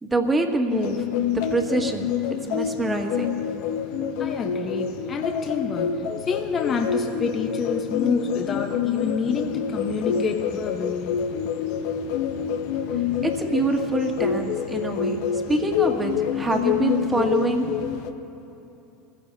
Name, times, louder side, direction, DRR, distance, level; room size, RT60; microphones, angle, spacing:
voice 1, 0.0-1.1 1.5-2.2 2.5-3.4 13.2-17.8, right 2 dB, 20° right, 3 dB, 1.9 m, -25 dB
sound 1, 0.7-18.1, left 8 dB, 70° left, 0.9 m, -27 dB
voice 2, 4.2-11.2, left 5 dB, 35° left, 3 dB, 1.1 m, -28 dB
24.0 x 15.5 x 2.8 m, 2.9 s
hypercardioid pair, 80°, 0 cm